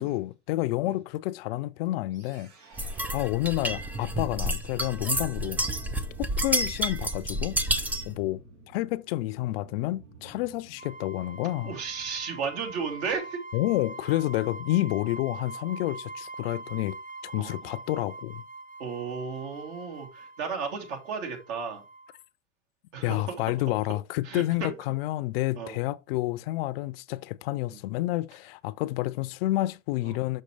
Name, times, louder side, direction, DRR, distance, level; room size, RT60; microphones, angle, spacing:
voice 1, 0.0-2.5 3.1-5.6 6.2-7.6 8.1-8.4 8.7-11.7 13.5-17.0 17.2-18.4 23.0-30.4, left 17 dB, 55° left, 0.5 m, -29 dB
sound 1, 2.1-13.2, right 3 dB, 80° right, 3.3 m, -51 dB
sound 2, 2.8-8.1, right 1 dB, 5° right, 0.3 m, -30 dB
sound 3, 10.8-22.2, right 3 dB, 25° right, 1.0 m, -43 dB
voice 2, 11.6-13.4 17.4-17.5 18.8-21.8 22.9-23.5 24.2-24.7 25.5-25.8 27.7-27.8 30.0-30.2, right 5 dB, 60° right, 2.8 m, -34 dB
6.4 x 6.3 x 3.2 m
hypercardioid pair, 120°, 36 cm